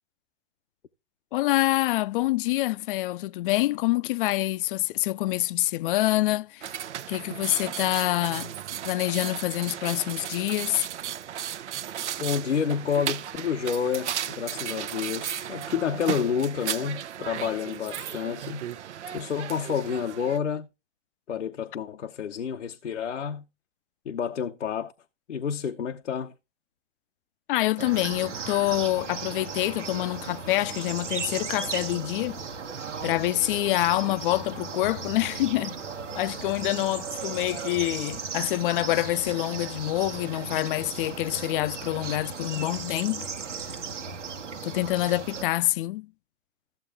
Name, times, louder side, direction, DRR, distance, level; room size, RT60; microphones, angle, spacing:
voice 1, 1.3-6.7 7.1-8.5 8.8-10.9 27.5-32.4 33.0-35.8 36.1-43.3 44.6-46.1, left 16 dB, 50° left, 0.6 m, -26 dB
sound 1, 6.6-20.4, right 10 dB, 75° right, 0.9 m, -35 dB
voice 2, 12.2-18.6 19.1-20.7 21.3-23.4 24.1-24.9 25.3-26.3, left 7 dB, 90° left, 0.9 m, -29 dB
sound 2, 27.8-45.4, right 5 dB, 90° right, 1.3 m, -36 dB
14.5 x 7.6 x 3.5 m
hypercardioid pair, 115°, 35 cm